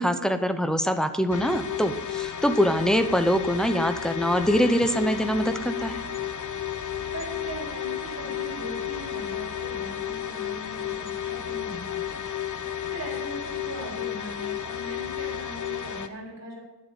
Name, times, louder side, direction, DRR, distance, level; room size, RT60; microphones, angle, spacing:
voice 1, 0.0-6.0, equal, ahead, 9 dB, 0.7 m, -24 dB
sound 1, 1.3-16.1, left 10 dB, 50° left, 0.8 m, -32 dB
voice 2, 7.1-12.2 12.8-16.6, right 1 dB, 45° right, -3 dB, 4.0 m, -39 dB
11.0 x 7.6 x 6.9 m, 1.1 s
wide cardioid pair, 140°, 37 cm